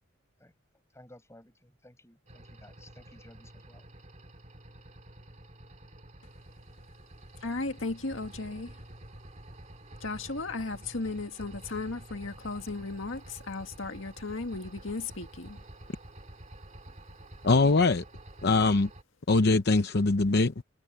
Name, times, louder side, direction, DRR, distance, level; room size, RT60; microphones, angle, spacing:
voice 1, 0.9-3.8, left 1 dB, 15° left, 8.0 m, -55 dB
sound 1, 2.3-19.0, right 1 dB, 40° right, 2.5 m, -49 dB
voice 2, 7.4-8.8 10.0-15.6, left 3 dB, 75° left, 1.9 m, -35 dB
voice 3, 17.4-18.0 18.4-18.9 19.3-20.5, left 3 dB, 55° left, 0.8 m, -22 dB
head